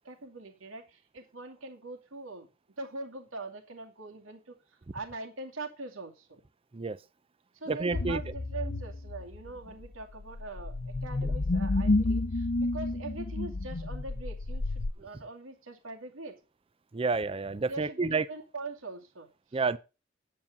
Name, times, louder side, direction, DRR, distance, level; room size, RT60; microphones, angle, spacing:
voice 1, 0.0-2.5 2.8-4.5 4.9-6.4 7.5-16.4 17.7-19.6, right 3 dB, 85° right, 2.4 m, -42 dB
voice 2, 7.7-8.3 11.2-11.3 16.9-18.3 19.5-19.8, right 4 dB, 25° right, 0.5 m, -30 dB
sound 1, 7.9-14.9, left 2 dB, 50° left, 0.7 m, -31 dB
9.6 x 8.9 x 4.0 m
head